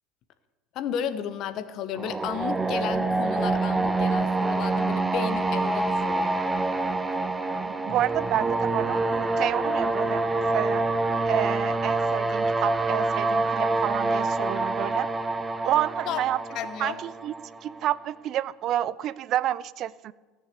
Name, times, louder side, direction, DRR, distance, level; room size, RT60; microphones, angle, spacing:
voice 1, 0.7-6.4 16.1-16.2 16.5-17.0, left 8 dB, 50° left, 11 dB, 1.0 m, -33 dB
sound 1, 2.0-17.8, right 2 dB, 15° right, 0.8 m, -26 dB
voice 2, 7.5-10.8 11.3-15.1 15.6-16.4 16.8-17.3 17.6-20.1, right 12 dB, 50° right, 20 dB, 0.4 m, -29 dB
14.5 x 6.6 x 8.3 m, 1.3 s
hypercardioid pair, 70°, 0 cm